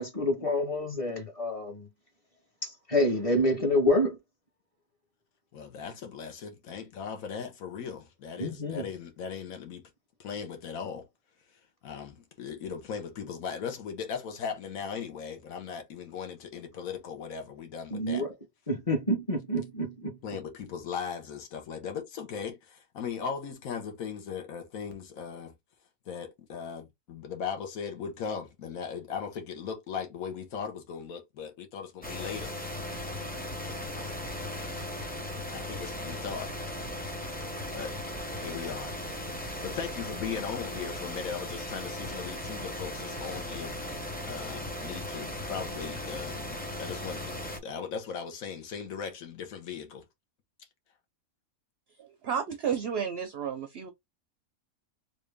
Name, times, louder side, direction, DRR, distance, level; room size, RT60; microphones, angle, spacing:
voice 1, 0.0-1.9 2.6-4.2 8.4-8.8 17.9-18.3 18.7-20.2, left 1 dB, 25° left, 1.0 m, -28 dB
voice 2, 5.5-9.9 10.2-11.1 11.8-18.2 20.2-25.5 26.1-32.5 35.5-36.5 37.7-37.9 38.3-38.9 39.4-50.0, left 6 dB, 70° left, 1.4 m, -38 dB
sound 1, 32.0-47.6, left 1 dB, 10° left, 0.5 m, -37 dB
voice 3, 52.0-53.9, right 7 dB, 60° right, 0.7 m, -32 dB
3.5 x 2.6 x 3.2 m
omnidirectional pair, 1.5 m